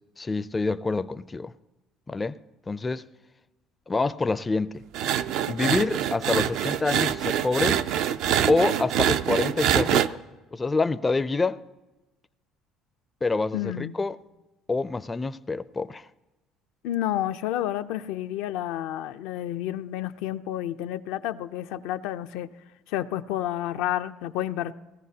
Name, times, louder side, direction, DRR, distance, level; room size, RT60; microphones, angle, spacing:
voice 1, 0.2-1.5 2.1-2.4 2.7-3.0 3.9-4.8 5.5-7.8 8.5-10.2 10.5-11.6 13.2-14.2 14.7-16.0, left 3 dB, 20° left, 0.4 m, -26 dB
sound 1, 4.9-10.1, right 10 dB, 70° right, 0.4 m, -25 dB
voice 2, 5.4-5.8 13.5-13.9 16.8-22.5 22.9-24.7, left 12 dB, 85° left, 0.5 m, -30 dB
18.0 x 14.0 x 2.8 m
cardioid pair, 100°, 0 cm